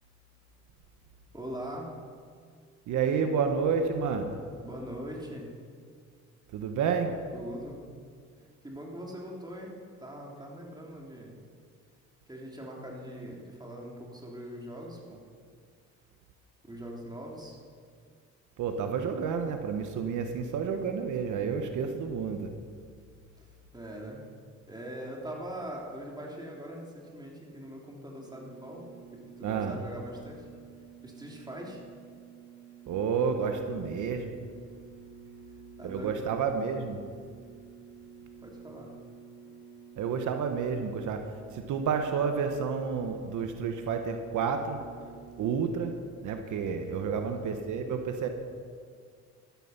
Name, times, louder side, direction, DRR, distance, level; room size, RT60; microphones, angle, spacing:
voice 1, 1.3-1.9 4.6-5.5 7.3-7.8 8.6-11.4 12.3-15.2 16.6-17.6 23.4-23.5 23.7-24.2 24.7-30.5 31.0-31.8 35.8-36.3 38.4-38.9 47.1-47.4, equal, 15° right, -2 dB, 3.5 m, -42 dB
voice 2, 2.9-4.4 6.5-7.1 18.6-22.5 29.4-29.8 32.9-34.3 35.8-37.0 40.0-41.2 41.5-44.8 45.4-45.9 46.2-48.3, right 6 dB, 80° right, 6 dB, 1.2 m, -30 dB
sound 1, 28.2-45.6, right 7 dB, 40° right, 3.4 m, -51 dB
13.5 x 13.0 x 5.9 m, 2.1 s
cardioid pair, 90°, 30 cm